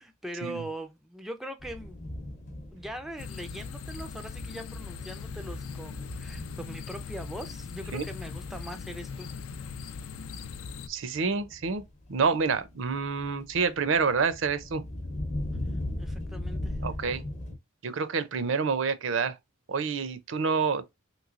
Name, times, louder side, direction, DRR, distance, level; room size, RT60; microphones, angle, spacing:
voice 1, 0.0-2.0 2.7-9.3 16.0-16.8, right 1 dB, ahead, 0.3 m, -41 dB
sound 1, 1.6-17.6, left 1 dB, 35° left, 0.7 m, -39 dB
sound 2, 3.2-10.9, left 5 dB, 85° left, 0.4 m, -40 dB
voice 2, 10.9-11.8 12.1-14.8 16.8-17.2 17.8-19.4 19.7-20.8, right 5 dB, 65° right, 0.5 m, -28 dB
3.2 x 3.0 x 2.4 m
head